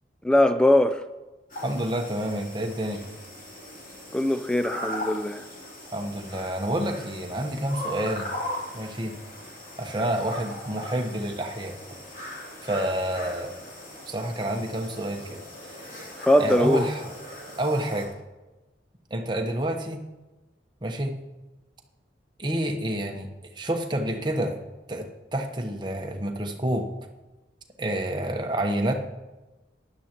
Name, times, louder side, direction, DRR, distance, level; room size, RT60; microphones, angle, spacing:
voice 1, 0.2-1.0 4.1-5.4 16.2-16.9, left 1 dB, 5° left, 10 dB, 0.4 m, -21 dB
sound 1, 1.5-18.1, left 1 dB, 45° left, 3.0 m, -39 dB
voice 2, 1.6-3.0 5.9-8.3 8.7-9.1 9.8-11.7 12.6-13.5 14.1-15.4 15.8-16.0 16.4-17.1 17.6-18.1 19.1-20.0 20.8-21.1 22.4-23.3 23.6-24.6 24.9-26.9 27.8-28.9, right 1 dB, 25° right, 3 dB, 1.0 m, -28 dB
15.5 x 11.0 x 3.0 m, 1.2 s
head